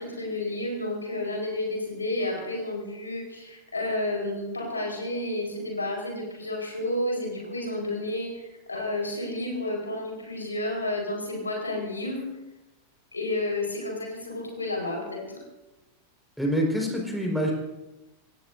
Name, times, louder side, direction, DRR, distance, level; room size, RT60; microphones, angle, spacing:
voice 1, 0.0-12.3 13.1-15.4, left 1 dB, 80° left, 1 dB, 4.8 m, -31 dB
voice 2, 16.4-17.5, equal, ahead, -1 dB, 4.8 m, -26 dB
25.0 x 17.5 x 2.7 m, 1.0 s
figure-of-eight pair, 90°, 0 cm